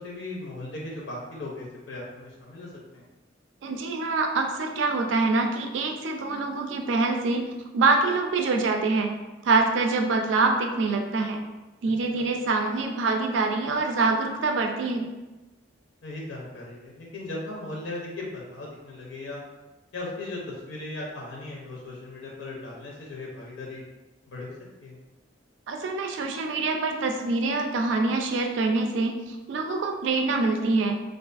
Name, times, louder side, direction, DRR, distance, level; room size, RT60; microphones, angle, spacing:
voice 1, 0.0-3.0 12.1-12.2 16.0-19.4 19.9-23.8 24.3-24.5 24.8-25.0, left 2 dB, 90° left, -3 dB, 0.6 m, -37 dB
voice 2, 3.6-7.5 7.7-9.1 9.4-11.4 11.8-15.1 25.7-31.0, right 3 dB, 75° right, 4 dB, 0.3 m, -25 dB
2.4 x 2.4 x 2.4 m, 1.1 s
head